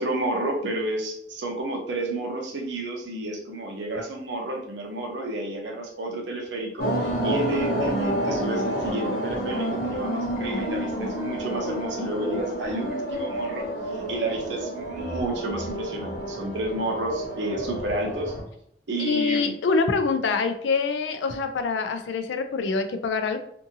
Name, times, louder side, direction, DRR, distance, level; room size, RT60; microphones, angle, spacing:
voice 1, 0.0-18.3 18.9-19.5, right 1 dB, 80° right, 1 dB, 0.7 m, -31 dB
sound 1, 6.8-18.4, right 1 dB, 65° left, 1.0 m, -29 dB
voice 2, 19.0-23.4, left 4 dB, 85° left, 8 dB, 0.4 m, -25 dB
2.7 x 2.6 x 2.6 m, 0.70 s
head